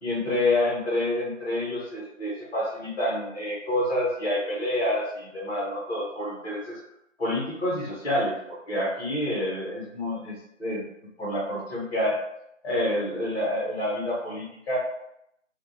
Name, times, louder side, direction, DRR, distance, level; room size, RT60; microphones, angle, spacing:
voice 1, 0.0-6.8 7.2-10.9 11.2-12.2 12.6-14.8, left 1 dB, 50° left, -5 dB, 1.0 m, -28 dB
2.3 x 2.2 x 2.6 m, 0.78 s
figure-of-eight pair, 155°, 39 cm